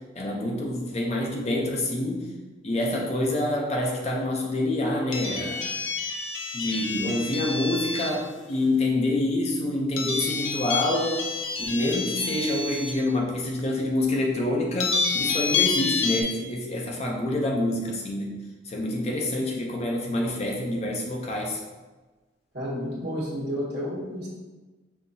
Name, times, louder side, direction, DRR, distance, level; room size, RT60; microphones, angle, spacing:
voice 1, 0.0-2.3 2.6-5.7 6.5-11.3 11.6-18.4 18.7-21.6, left 1 dB, 35° left, -1 dB, 0.6 m, -27 dB
sound 1, 5.1-8.2 10.0-12.9 13.6-13.7 14.8-16.2, left 5 dB, 85° left, 0.5 m, -28 dB
voice 2, 22.5-24.3, equal, 60° right, -6 dB, 1.3 m, -31 dB
5.5 x 2.9 x 2.7 m, 1.2 s
head